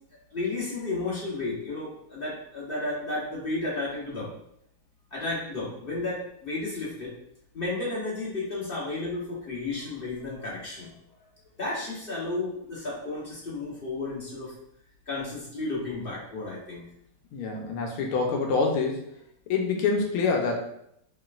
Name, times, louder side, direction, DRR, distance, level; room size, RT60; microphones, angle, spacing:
voice 1, 0.3-4.3 5.1-7.2 7.5-10.9 11.6-14.5 15.1-16.9, left 2 dB, 40° left, -6 dB, 0.8 m, -33 dB
voice 2, 17.3-19.1 19.5-20.6, left 4 dB, 90° left, 1 dB, 1.6 m, -26 dB
4.8 x 3.2 x 2.5 m, 0.75 s
omnidirectional pair, 2.3 m